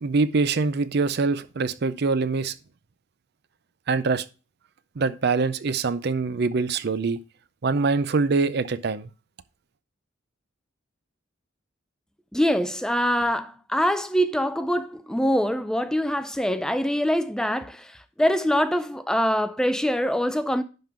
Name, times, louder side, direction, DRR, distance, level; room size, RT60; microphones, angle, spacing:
voice 1, 0.0-2.5 3.9-4.2 5.0-7.2 7.6-9.1, right 4 dB, 55° right, 0.5 m, -24 dB
voice 2, 12.3-20.6, equal, 5° left, 0.4 m, -24 dB
11.0 x 3.7 x 5.8 m
head